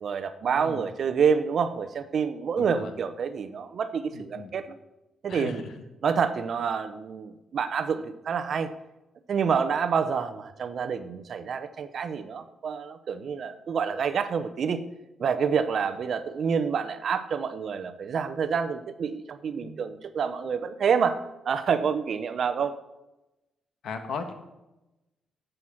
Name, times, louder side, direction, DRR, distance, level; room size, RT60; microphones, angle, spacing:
voice 1, 0.0-4.8 5.2-5.6 6.0-8.7 9.3-14.8 15.2-21.2 21.4-22.7, right 6 dB, 55° right, 10 dB, 0.8 m, -28 dB
voice 2, 2.6-2.9 4.1-4.5 5.3-5.8 19.6-19.8 23.8-24.3, left 5 dB, 70° left, 6 dB, 1.6 m, -37 dB
12.0 x 7.9 x 5.8 m, 0.99 s
cardioid pair, 110°, 0 cm